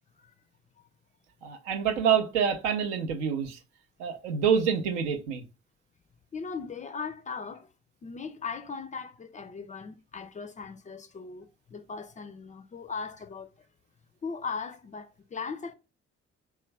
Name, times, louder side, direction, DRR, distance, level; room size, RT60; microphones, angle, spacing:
voice 1, 1.4-3.6 4.0-5.4, right 7 dB, 80° right, 0.5 m, -27 dB
voice 2, 6.3-7.7 8.0-13.5 14.2-15.7, left 5 dB, 25° left, 0.3 m, -38 dB
3.1 x 2.2 x 3.2 m
figure-of-eight pair, 40°, 35 cm